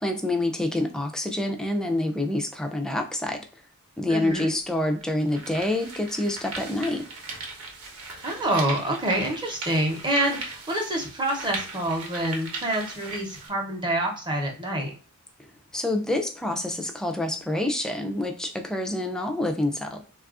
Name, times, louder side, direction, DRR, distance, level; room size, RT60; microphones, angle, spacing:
voice 1, 0.0-3.4 4.0-7.0 15.7-20.0, left 1 dB, 5° left, 3 dB, 0.3 m, -27 dB
voice 2, 4.1-4.5 8.2-14.9, right 1 dB, 20° right, 1 dB, 0.7 m, -27 dB
sound 1, 4.3-4.4 5.0-13.5, right 3 dB, 70° right, 0.8 m, -38 dB
3.3 x 2.3 x 2.4 m, 0.38 s
head